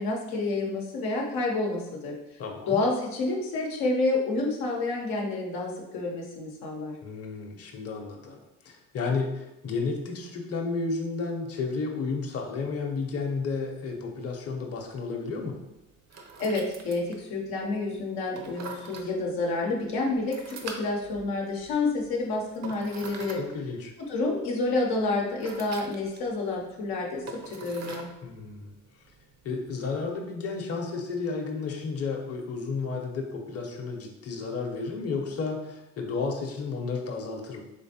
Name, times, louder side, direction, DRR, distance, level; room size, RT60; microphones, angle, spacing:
voice 1, 0.0-2.2 2.7-6.9 16.4-23.4 24.0-28.1, left 2 dB, 80° left, -1 dB, 0.8 m, -29 dB
voice 2, 2.4-2.8 7.0-15.6 23.4-23.9 28.2-28.7 29.4-37.6, left 4 dB, 45° left, 2 dB, 0.8 m, -32 dB
sound 1, 12.7-30.1, right 4 dB, 50° right, 0.7 m, -47 dB
3.7 x 3.2 x 2.8 m, 0.90 s
supercardioid pair, 65°, 35 cm